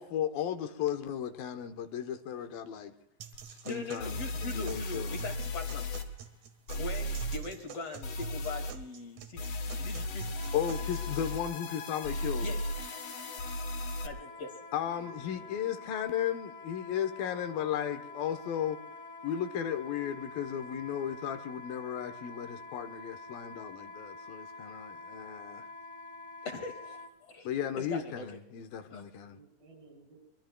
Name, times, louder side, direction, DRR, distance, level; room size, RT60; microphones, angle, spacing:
voice 1, 0.0-2.9 3.5-5.2 10.5-12.5 14.7-18.8 19.2-25.7 27.4-29.4, left 9 dB, 80° left, 2.8 m, -35 dB
sound 1, 3.2-11.2, right 7 dB, 60° right, 2.6 m, -49 dB
sound 2, 3.3-3.4 4.0-6.0 6.7-7.4 8.0-8.7 9.4-14.1, left 1 dB, 65° left, 3.5 m, -36 dB
voice 2, 3.6-5.9 6.8-9.5 9.8-10.3 12.4-12.6 14.0-14.6 26.4-27.5 27.8-28.4 28.9-29.1, left 3 dB, 45° left, 3.0 m, -41 dB
Wind instrument woodwind instrument, 10.3-27.1, left 3 dB, 30° left, 2.5 m, -47 dB
voice 3, 14.9-15.6 20.0-20.8 29.2-30.2, left 1 dB, 85° right, 5.8 m, -55 dB
24.5 x 23.5 x 2.3 m
omnidirectional pair, 4.1 m